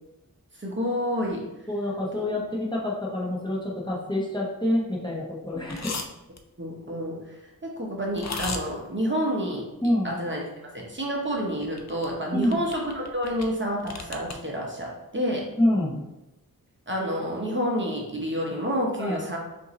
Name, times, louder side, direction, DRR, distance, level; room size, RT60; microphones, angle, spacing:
voice 1, 0.5-1.4 6.6-9.7 10.0-10.5 10.7-15.5 16.9-19.4, equal, 30° right, -2 dB, 0.8 m, -29 dB
voice 2, 1.7-6.0 9.8-10.1 12.3-12.6 15.6-16.0 19.0-19.2, left 1 dB, 10° left, -5 dB, 0.9 m, -26 dB
sound 1, 5.7-6.1 6.4-6.5 8.1-8.6 11.6-12.1 12.4-13.5 13.8-14.3, left 4 dB, 45° left, 0.5 m, -34 dB
5.3 x 2.6 x 3.1 m, 0.94 s
wide cardioid pair, 90°, 37 cm